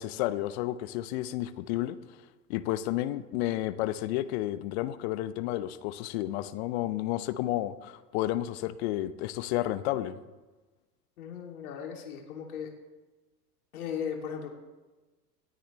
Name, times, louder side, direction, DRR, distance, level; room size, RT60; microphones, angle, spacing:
voice 1, 0.0-2.0 2.5-10.2, left 14 dB, 40° left, 13 dB, 0.9 m, -31 dB
voice 2, 11.2-12.7 13.7-14.5, left 7 dB, 60° left, 2 dB, 2.8 m, -37 dB
27.0 x 9.9 x 3.2 m, 1.2 s
figure-of-eight pair, 85°, 49 cm